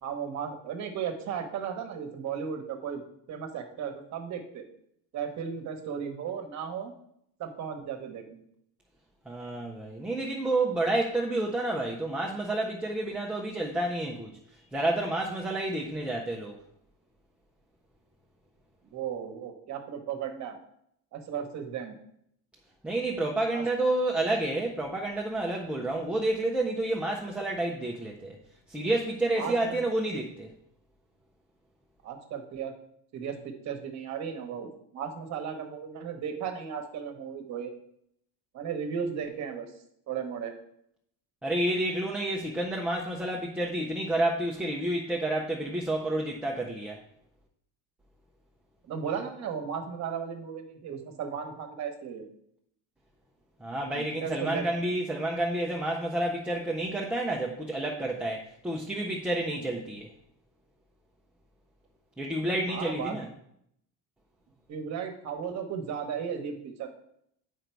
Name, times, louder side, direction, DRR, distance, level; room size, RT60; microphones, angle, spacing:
voice 1, 0.0-3.0 3.3-4.6 5.1-6.9 7.4-8.4 18.9-20.6 21.1-22.0 23.5-23.7 29.3-29.8 32.0-32.7 33.1-37.7 38.5-39.7 40.1-40.6 48.9-52.3 53.9-54.7 62.7-63.2 64.7-66.9, right 7 dB, 45° right, 6 dB, 1.0 m, -35 dB
voice 2, 9.3-16.6 22.8-28.4 28.7-30.5 41.4-47.0 53.6-60.1 62.2-63.3, right 1 dB, 5° right, -1 dB, 0.3 m, -30 dB
7.9 x 5.1 x 4.5 m, 0.73 s
cardioid pair, 165°, 38 cm